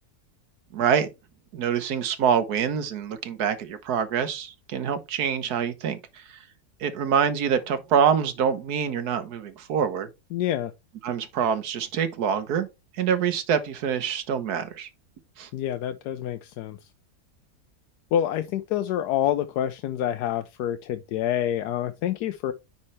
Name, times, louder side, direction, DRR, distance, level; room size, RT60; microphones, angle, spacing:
voice 1, 0.7-1.1 1.5-6.4 6.8-10.1 11.0-12.7 12.9-14.9 15.4-15.5, right 7 dB, 75° right, 1.5 m, -25 dB
voice 2, 10.3-10.7 15.5-16.8 18.1-22.5, left 11 dB, 85° left, 1.1 m, -27 dB
9.8 x 4.3 x 3.1 m
omnidirectional pair, 1.7 m